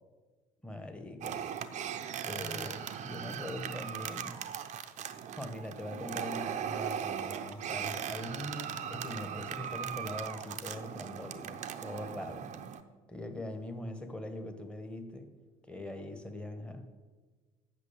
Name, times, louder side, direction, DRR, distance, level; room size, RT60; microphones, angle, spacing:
voice 1, 0.6-1.5 2.2-4.5 5.3-12.5 13.1-15.3 15.7-17.0, left 1 dB, 5° left, 6 dB, 1.2 m, -42 dB
sound 1, 1.2-12.8, right 8 dB, 40° right, 0.7 m, -39 dB
8.2 x 6.3 x 7.3 m, 1.3 s
figure-of-eight pair, 60°, 19 cm